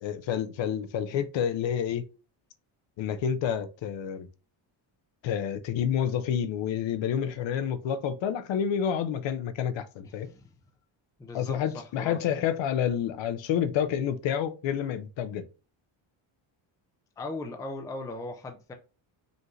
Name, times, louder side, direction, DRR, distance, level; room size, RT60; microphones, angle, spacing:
voice 1, 0.0-2.1 3.0-4.3 5.2-10.3 11.3-15.5, left 9 dB, 65° left, 0.6 m, -29 dB
voice 2, 10.0-10.5 11.2-12.4 17.2-18.7, left 2 dB, 10° left, 0.3 m, -39 dB
5.2 x 2.5 x 3.1 m
cardioid pair, 160°, 50 cm